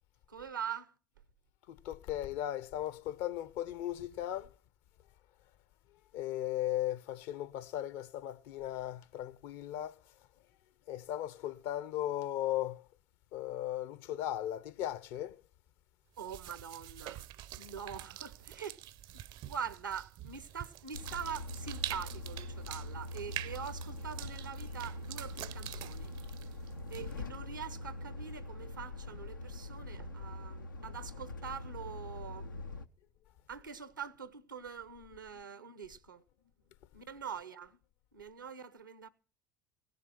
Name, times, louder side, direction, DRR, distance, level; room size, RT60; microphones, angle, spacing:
voice 1, 0.3-0.9 16.2-17.2 17.6-18.8 19.1-26.1 26.9-32.5 33.5-36.2 36.9-37.8 38.1-39.1, right 7 dB, 90° right, 1.0 m, -44 dB
voice 2, 1.7-4.5 6.1-10.0 10.9-12.9 13.3-15.4, left 13 dB, 60° left, 0.9 m, -37 dB
sound 1, 16.2-27.4, right 13 dB, 50° right, 0.6 m, -46 dB
Truck, 20.9-32.9, left 2 dB, 90° left, 0.7 m, -43 dB
17.0 x 6.9 x 9.7 m
figure-of-eight pair, 70°, 10 cm